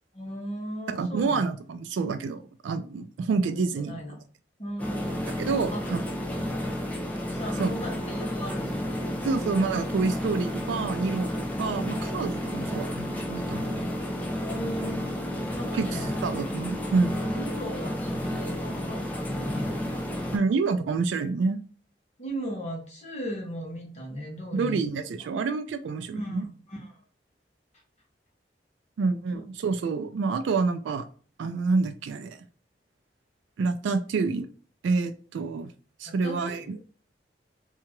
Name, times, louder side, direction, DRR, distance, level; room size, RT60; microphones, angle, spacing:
voice 1, 0.1-1.5 3.4-4.2 4.6-5.2 5.7-5.8 7.3-9.0 14.4-15.3 15.5-16.1 17.3-19.9 22.2-24.8 25.2-25.3 26.1-27.0 29.3-29.4 36.0-36.8, equal, 40° left, 0.9 m, -37 dB
voice 2, 0.9-3.9 5.4-6.0 7.6-7.7 9.2-11.3 11.6-13.9 15.7-17.2 20.3-21.6 24.5-26.4 29.0-31.1 31.4-32.4 33.6-34.5 34.8-35.7 36.0-36.8, right 4 dB, 90° right, 0.3 m, -28 dB
sound 1, 4.8-20.4, left 1 dB, 10° left, 0.4 m, -31 dB
2.8 x 2.3 x 2.9 m
head